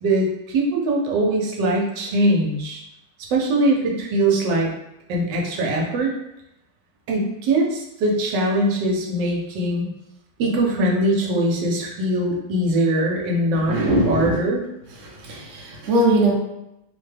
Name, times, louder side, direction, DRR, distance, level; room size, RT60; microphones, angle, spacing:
voice 1, 0.0-2.8 3.3-4.7 5.1-6.1 7.1-9.9 10.4-13.8 14.1-14.6, right 1 dB, 75° right, -1 dB, 1.3 m, -21 dB
voice 2, 13.6-14.4 15.0-16.3, right 1 dB, 60° right, -2 dB, 0.7 m, -21 dB
3.3 x 2.1 x 3.2 m, 0.86 s
omnidirectional pair, 2.0 m